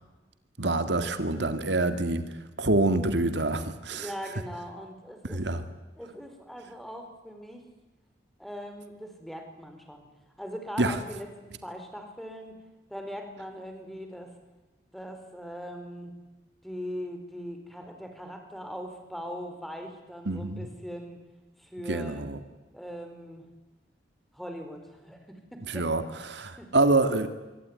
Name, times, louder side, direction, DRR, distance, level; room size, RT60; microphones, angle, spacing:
voice 1, 0.6-2.2 2.6-4.1 5.3-5.6 10.8-11.0 20.3-20.7 21.9-22.4 25.7-26.0 26.3-27.3, right 2 dB, 75° right, 9 dB, 2.2 m, -26 dB
voice 2, 3.9-5.4 6.0-7.6 8.4-10.1 10.4-12.6 12.9-14.3 14.9-16.2 16.6-21.2 21.6-22.2 22.7-23.5 24.3-25.9 26.6-26.7, equal, ahead, 5 dB, 4.5 m, -40 dB
25.0 x 24.5 x 9.7 m, 1.1 s
head